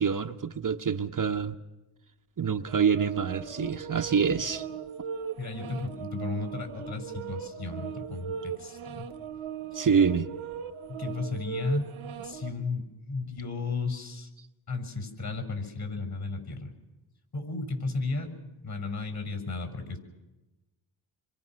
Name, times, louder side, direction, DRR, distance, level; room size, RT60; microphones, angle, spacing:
voice 1, 0.0-1.5 2.4-4.7 9.7-10.3, right 6 dB, 40° right, 1.1 m, -26 dB
sound 1, 2.7-12.5, right 7 dB, 75° right, 1.7 m, -38 dB
voice 2, 5.4-9.1 9.7-9.9 10.9-11.9 12.2-14.3 14.7-16.7 17.3-18.3 18.6-20.0, left 3 dB, 50° left, 6.9 m, -34 dB
28.0 x 23.5 x 6.4 m
cardioid pair, 60°, 49 cm